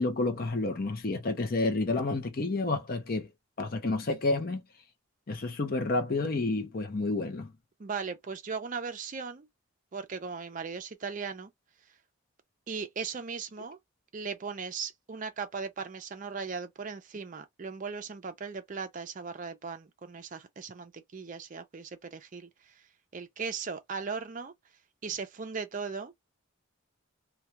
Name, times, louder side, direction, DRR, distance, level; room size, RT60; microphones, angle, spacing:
voice 1, 0.0-3.3 3.6-4.6 5.3-7.5, left 2 dB, 45° left, 0.6 m, -30 dB
voice 2, 7.8-9.5 9.9-11.5 12.7-13.8 14.1-22.7 23.1-24.5 25.0-26.1, right 5 dB, 35° right, 0.4 m, -38 dB
2.3 x 2.2 x 2.7 m
head